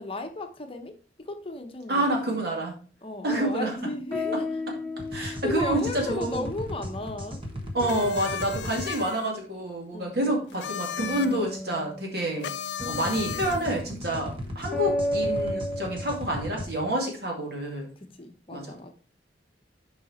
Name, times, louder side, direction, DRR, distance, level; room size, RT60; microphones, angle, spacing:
voice 1, 0.0-2.4 3.0-4.4 5.1-7.4 9.9-10.8 18.0-18.9, left 2 dB, 30° left, 5 dB, 0.8 m, -35 dB
voice 2, 1.9-2.8 3.2-3.8 5.1-6.4 7.7-12.5 12.8-17.9 18.5-18.6, right 1 dB, 60° right, 0 dB, 2.2 m, -28 dB
sound 1, 3.7-7.5 7.8-9.2 11.0-16.8, left 1 dB, 5° left, 1.0 m, -35 dB
sound 2, 5.0-8.9 12.8-16.7, left 1 dB, 30° right, 1.2 m, -37 dB
sound 3, 7.8-9.3 10.5-11.4 12.4-13.8, left 8 dB, 75° left, 0.4 m, -35 dB
6.8 x 4.9 x 4.3 m, 0.38 s
head